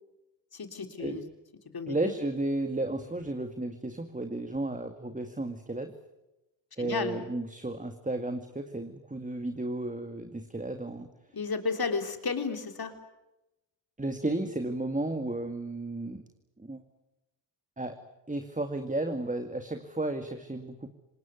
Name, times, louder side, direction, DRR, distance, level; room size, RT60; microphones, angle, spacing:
voice 1, 0.5-1.2 1.7-2.0 6.8-7.2 11.3-12.9, left 4 dB, 50° left, 7 dB, 3.7 m, -32 dB
voice 2, 1.9-5.9 6.8-11.1 14.0-16.2 16.6-16.8 17.8-18.0 18.3-20.9, right 2 dB, 15° right, 7 dB, 2.2 m, -33 dB
25.5 x 20.5 x 9.5 m, 0.96 s
supercardioid pair, 50°, 46 cm